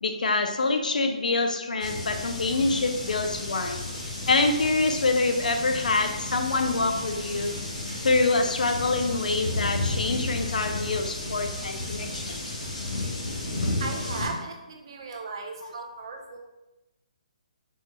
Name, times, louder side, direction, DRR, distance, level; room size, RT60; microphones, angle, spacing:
voice 1, 0.0-3.9 4.3-7.5 8.0-12.4 13.6-13.7, left 3 dB, 90° left, 6 dB, 0.4 m, -26 dB
sound 1, 1.8-14.3, left 2 dB, 70° left, 1.4 m, -33 dB
voice 2, 13.8-16.4, right 3 dB, 35° right, 2 dB, 0.5 m, -36 dB
4.3 x 2.7 x 2.2 m, 1.0 s
hypercardioid pair, 170°, 4 cm